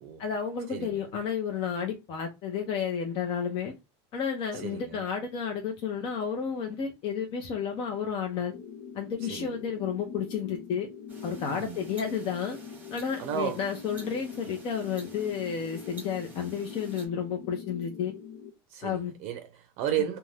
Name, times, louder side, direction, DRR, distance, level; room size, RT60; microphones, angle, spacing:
voice 1, 0.2-3.7 4.1-8.5 8.9-10.9 11.2-12.6 12.9-18.1 18.8-19.1, left 7 dB, 40° left, 0.7 m, -31 dB
voice 2, 0.7-1.0 4.5-5.1 9.3-9.5 11.5-11.8 13.2-13.6 18.7-20.2, right 9 dB, 50° right, 0.5 m, -33 dB
sound 1, 8.5-18.5, left 6 dB, 85° left, 0.8 m, -43 dB
sound 2, 11.1-17.1, right 2 dB, 15° right, 1.0 m, -51 dB
2.6 x 2.2 x 3.2 m
supercardioid pair, 150°, 14 cm